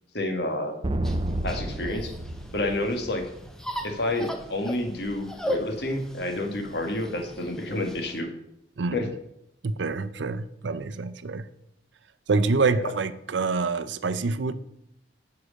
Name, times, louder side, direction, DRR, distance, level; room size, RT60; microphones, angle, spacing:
voice 1, 0.1-0.8 1.4-2.1 2.5-3.2 3.8-8.3 8.9-9.1 12.7-12.9, left 1 dB, 60° left, 5 dB, 1.6 m, -29 dB
sound 1, 0.8-3.5, right 1 dB, 25° right, 0.5 m, -30 dB
sound 2, 1.0-8.2, left 1 dB, 5° left, 0.8 m, -38 dB
voice 2, 8.8-9.1 9.6-11.4 12.3-14.5, right 4 dB, 75° right, 13 dB, 0.6 m, -26 dB
9.9 x 4.8 x 6.4 m, 0.77 s
head